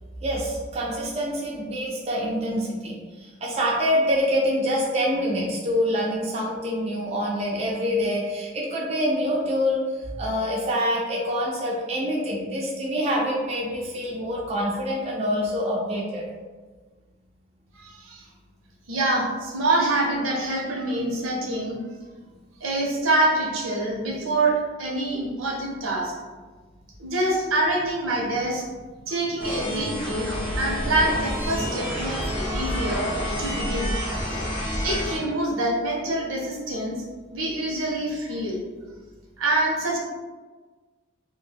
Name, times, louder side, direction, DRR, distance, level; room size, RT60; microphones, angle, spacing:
voice 1, 0.2-16.2 34.1-34.4, equal, 30° right, -3 dB, 0.3 m, -26 dB
voice 2, 17.7-18.2 18.9-21.8 22.6-26.1 27.0-28.6 29.1-30.3 30.6-33.9 34.8-37.0 37.3-38.6 39.4-40.0, right 2 dB, 80° right, -2 dB, 0.6 m, -25 dB
sound 1, 29.4-35.2, equal, 25° left, 0.5 m, -28 dB
2.1 x 2.0 x 3.3 m, 1.4 s
head